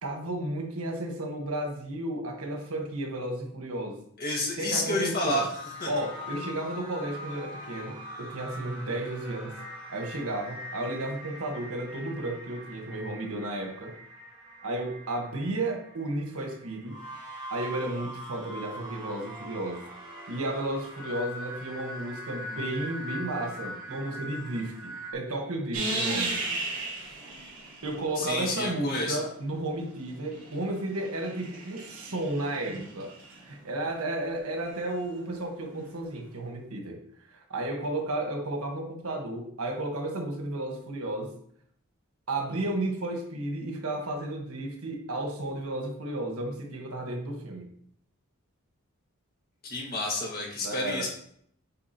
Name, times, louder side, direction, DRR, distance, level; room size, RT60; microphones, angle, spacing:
voice 1, 0.0-4.0 4.5-5.5 5.9-9.6 9.9-14.0 14.6-17.0 17.5-19.8 20.3-26.4 27.8-33.1 33.4-37.0 37.3-41.3 42.3-47.7 50.6-51.1, right 1 dB, 85° right, 2 dB, 1.4 m, -33 dB
voice 2, 4.2-5.5 5.8-5.9 28.2-29.2 49.6-51.1, left 1 dB, 45° left, -1 dB, 1.8 m, -29 dB
sound 1, 5.5-25.1, equal, 20° right, 2.1 m, -42 dB
sound 2, 25.7-28.8 29.9-33.4 35.7-35.8, right 2 dB, 65° right, 2.7 m, -35 dB
8.4 x 4.6 x 2.9 m, 0.66 s
head